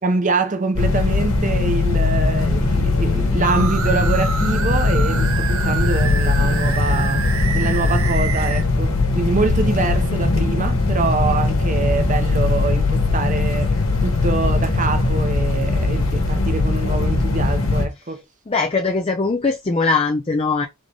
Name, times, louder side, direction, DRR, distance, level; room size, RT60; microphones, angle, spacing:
voice 1, 0.0-18.2, right 3 dB, 35° right, 0.8 m, -25 dB
sound 1, 0.7-17.9, left 3 dB, 65° left, 1.4 m, -19 dB
sound 2, 3.4-8.6, right 7 dB, 65° right, 0.6 m, -28 dB
voice 2, 18.5-20.7, left 4 dB, 25° left, 0.5 m, -20 dB
3.8 x 3.7 x 3.5 m
head